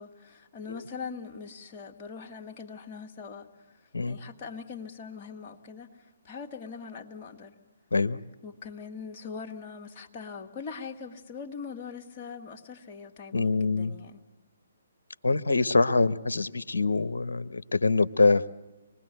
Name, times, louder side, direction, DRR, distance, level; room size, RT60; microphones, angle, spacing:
voice 1, 0.0-3.5 4.1-5.9 6.2-7.5 8.4-14.2, left 5 dB, 30° left, 2 dB, 2.0 m, -41 dB
voice 2, 13.3-13.9 15.2-18.5, left 3 dB, 70° left, 15 dB, 0.9 m, -24 dB
26.0 x 20.5 x 7.8 m, 1.1 s
figure-of-eight pair, 135°, 0 cm